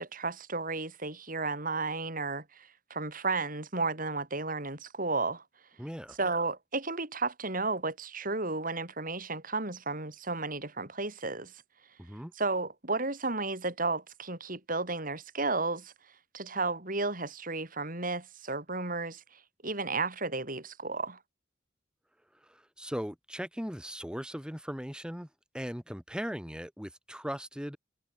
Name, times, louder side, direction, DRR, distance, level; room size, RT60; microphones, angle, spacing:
voice 1, 0.0-5.4 6.2-11.5 12.4-15.9 16.3-19.2 19.6-21.2, right 3 dB, 45° right, 7.1 m, -33 dB
voice 2, 5.8-6.2 12.0-12.3 22.5-25.3 25.5-27.8, equal, 5° right, 5.0 m, -38 dB
head